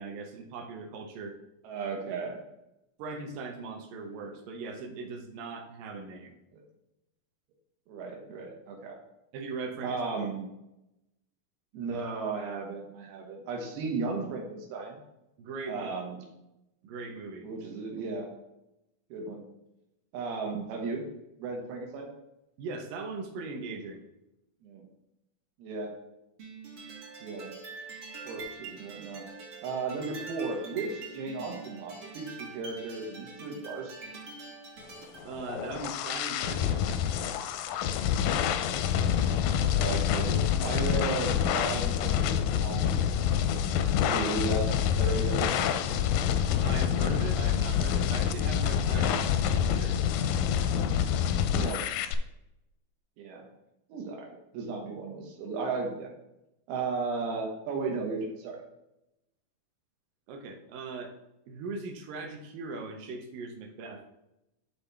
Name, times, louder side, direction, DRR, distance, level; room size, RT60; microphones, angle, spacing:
voice 1, 0.0-1.4 3.0-6.4 9.3-10.0 15.4-15.9 16.8-17.5 22.6-24.0 35.2-37.1 46.4-50.0 60.3-61.2 61.5-64.0, right 4 dB, 70° right, 4 dB, 2.4 m, -40 dB
voice 2, 1.6-2.4 6.5-6.6 7.9-9.0 9.8-10.5 11.7-15.0 15.7-16.2 17.4-18.3 19.1-19.4 20.1-21.0 21.4-22.1 24.6-24.9 25.6-26.0 27.2-27.5 28.3-29.3 29.6-33.9 39.8-43.3 44.0-45.5 48.9-49.3 51.5-51.9 53.2-53.5 53.9-56.1 56.7-58.6, right 4 dB, 90° right, 1 dB, 3.2 m, -35 dB
sound 1, 26.4-35.3, right 4 dB, 55° right, 1.4 m, -44 dB
sound 2, 35.2-52.2, left 9 dB, 80° left, 2.0 m, -27 dB
11.5 x 4.2 x 3.4 m, 0.89 s
omnidirectional pair, 4.4 m